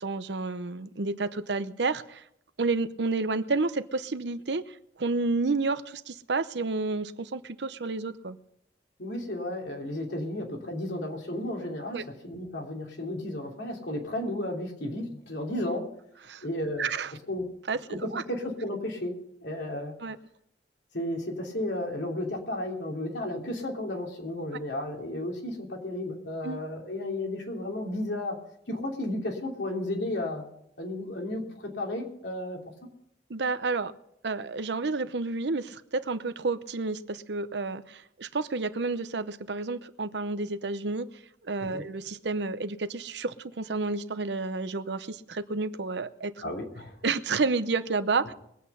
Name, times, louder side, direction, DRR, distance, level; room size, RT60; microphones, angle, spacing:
voice 1, 0.0-2.2 2.6-8.4 11.9-12.0 16.3-16.4 16.8-17.1 17.7-18.2 20.0-20.2 26.4-26.6 33.3-33.9 34.2-41.1 41.4-46.4 47.0-48.3, right 3 dB, 75° right, 13 dB, 0.8 m, -30 dB
voice 2, 9.0-15.9 16.4-16.9 17.3-17.5 17.9-19.1 19.4-20.0 20.9-28.4 28.7-30.4 30.8-32.6 41.7-41.8 46.4-46.9, left 1 dB, 80° left, 1 dB, 3.1 m, -33 dB
21.5 x 8.5 x 5.6 m, 0.75 s
head